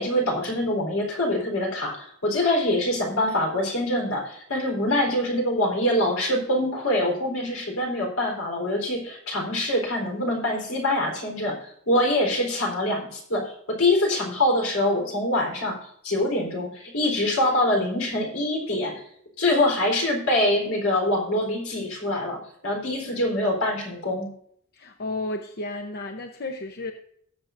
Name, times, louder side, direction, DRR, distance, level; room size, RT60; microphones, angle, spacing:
voice 1, 0.0-15.8 16.0-18.9 19.4-24.3, left 1 dB, 85° left, 0 dB, 4.0 m, -24 dB
voice 2, 24.7-26.9, left 2 dB, 50° left, 5 dB, 0.8 m, -32 dB
19.0 x 7.3 x 2.6 m, 0.67 s
head